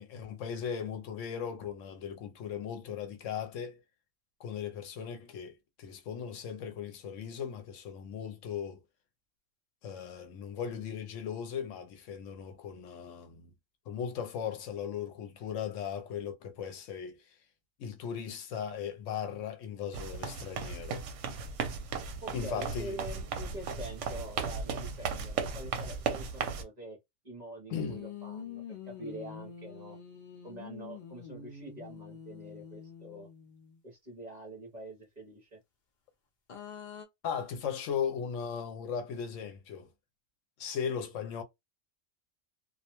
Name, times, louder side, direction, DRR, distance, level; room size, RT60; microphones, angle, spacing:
voice 1, 0.0-3.8 4.4-8.8 9.8-13.5 13.9-17.4 17.8-21.0 22.3-23.0 27.7-28.0 37.2-39.9 40.6-41.4, left 7 dB, 75° left, 0.9 m, -37 dB
sound 1, 19.9-26.6, right 5 dB, 75° right, 0.9 m, -36 dB
voice 2, 22.2-27.0 27.2-30.0 30.4-33.3 33.8-35.6, right 1 dB, 40° right, 0.8 m, -45 dB
sound 2, 27.8-33.8 36.5-37.0, left 7 dB, 50° left, 0.6 m, -46 dB
2.3 x 2.1 x 2.9 m
omnidirectional pair, 1.3 m